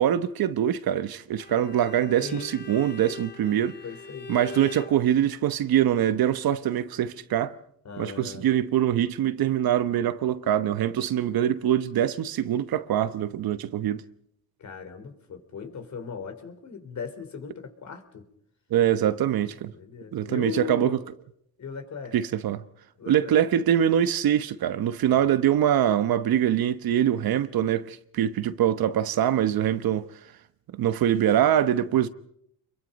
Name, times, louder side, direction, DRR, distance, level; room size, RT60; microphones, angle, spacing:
voice 1, 0.0-3.8 4.3-7.5 8.0-14.0 18.7-19.7 20.1-21.0 22.1-22.6 23.1-30.0 30.7-32.1, right 10 dB, 70° right, 1.1 m, -24 dB
Bowed string instrument, 1.3-5.0, left 5 dB, 30° left, 1.8 m, -41 dB
voice 2, 2.2-2.5 3.8-4.3 7.9-8.5 14.6-18.3 19.7-21.0 21.6-22.1 23.0-23.4 25.1-25.3 31.8-32.1, left 6 dB, 50° left, 3.9 m, -38 dB
27.5 x 22.5 x 5.3 m
cardioid pair, 100°, 37 cm